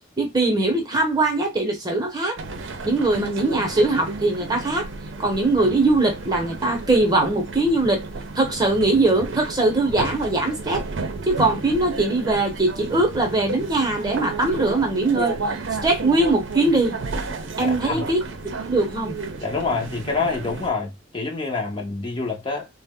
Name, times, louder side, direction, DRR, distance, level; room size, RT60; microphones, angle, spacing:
voice 1, 0.2-2.4 2.8-4.9 5.2-8.0 8.3-10.8 11.3-15.3 15.8-16.9 17.6-19.1, right 2 dB, 20° right, 0.7 m, -21 dB
sound 1, 2.4-20.7, right 3 dB, 85° right, 0.6 m, -32 dB
voice 2, 17.6-18.1 19.4-22.7, left 4 dB, 25° left, 0.5 m, -27 dB
2.6 x 2.0 x 3.5 m
head